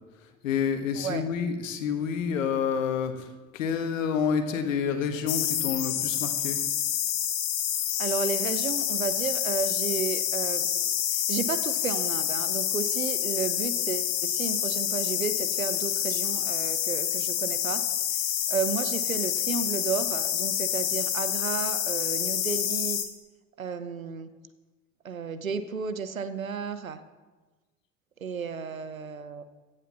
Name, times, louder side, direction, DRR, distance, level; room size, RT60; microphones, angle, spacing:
voice 1, 0.4-6.6, left 6 dB, 75° left, 7 dB, 1.5 m, -28 dB
voice 2, 1.0-1.3 8.0-10.7 11.1-17.8 18.5-23.0 23.6-24.3 25.0-27.0 28.2-29.4, right 6 dB, 85° right, 12 dB, 0.8 m, -32 dB
sound 1, 5.3-23.0, left 10 dB, 55° left, 1.9 m, -28 dB
16.0 x 8.5 x 6.8 m, 1.2 s
figure-of-eight pair, 55°, 40 cm